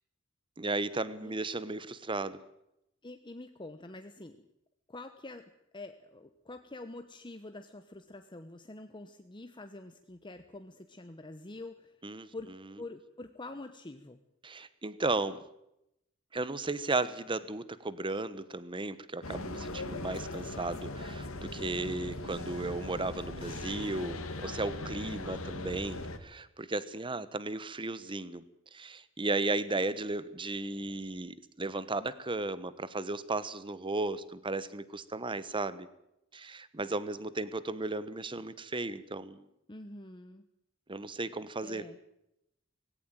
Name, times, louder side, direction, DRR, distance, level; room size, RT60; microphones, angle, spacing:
voice 1, 0.6-2.4 12.0-12.3 14.4-15.4 16.3-28.4 28.7-35.9 36.3-39.5 40.9-41.8, right 2 dB, 25° right, 15 dB, 1.1 m, -35 dB
voice 2, 3.0-4.4 4.9-12.0 12.3-12.5 12.8-14.2 39.7-40.4 41.6-42.0, left 2 dB, 25° left, 8 dB, 1.0 m, -46 dB
sound 1, 19.2-26.2, left 2 dB, 85° left, 2.3 m, -40 dB
18.5 x 17.0 x 9.1 m, 0.82 s
head